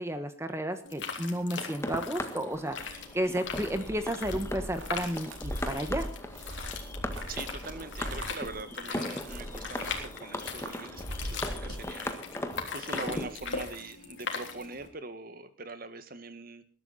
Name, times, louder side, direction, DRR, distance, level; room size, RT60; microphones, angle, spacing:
voice 1, 0.0-6.1, right 1 dB, 15° right, 9 dB, 1.3 m, -32 dB
sound 1, 0.9-14.9, left 5 dB, 65° left, 3.5 m, -41 dB
sound 2, 1.6-13.3, left 1 dB, 15° left, 1.6 m, -39 dB
sound 3, 2.5-12.5 12.8-13.7, equal, 70° right, 3.9 m, -41 dB
voice 2, 7.3-12.4 12.7-16.6, right 3 dB, 45° right, 11 dB, 1.7 m, -42 dB
21.0 x 12.0 x 4.2 m, 0.40 s
head